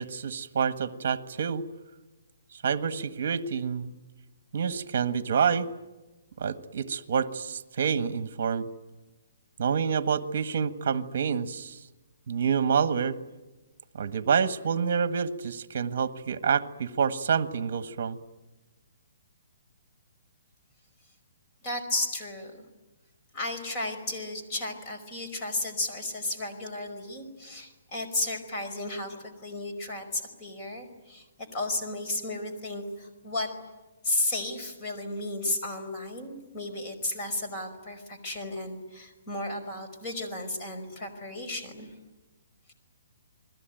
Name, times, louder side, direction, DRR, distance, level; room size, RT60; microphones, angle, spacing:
voice 1, 0.0-1.6 2.6-3.9 4.5-5.7 6.4-8.7 9.6-11.8 12.3-13.2 13.9-18.2, right 6 dB, 50° right, 11 dB, 1.5 m, -27 dB
voice 2, 21.6-22.6 23.3-29.2 29.4-33.5 34.0-41.9, left 2 dB, 25° left, 4 dB, 5.0 m, -33 dB
29.5 x 21.5 x 9.2 m, 1.1 s
hypercardioid pair, 165°, 0 cm